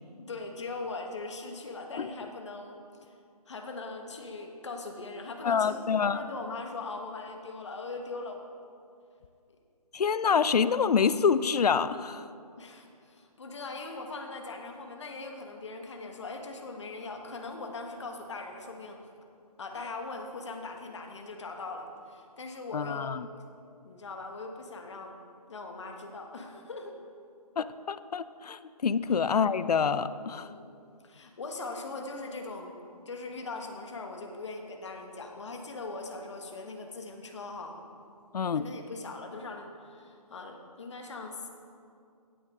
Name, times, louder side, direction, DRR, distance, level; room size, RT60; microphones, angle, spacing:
voice 1, 0.2-3.1 3.5-8.4 12.6-19.0 19.6-23.1 23.8-25.2 25.5-27.0 30.4-30.7 31.0-32.8 33.0-37.7 38.5-41.5, left 3 dB, 45° left, 3 dB, 1.5 m, -40 dB
voice 2, 5.4-6.2 9.9-12.2 22.7-23.3 27.6-30.5 38.3-38.6, left 6 dB, 75° left, 14 dB, 0.6 m, -27 dB
16.0 x 9.4 x 3.8 m, 2.4 s
hypercardioid pair, 175°, 20 cm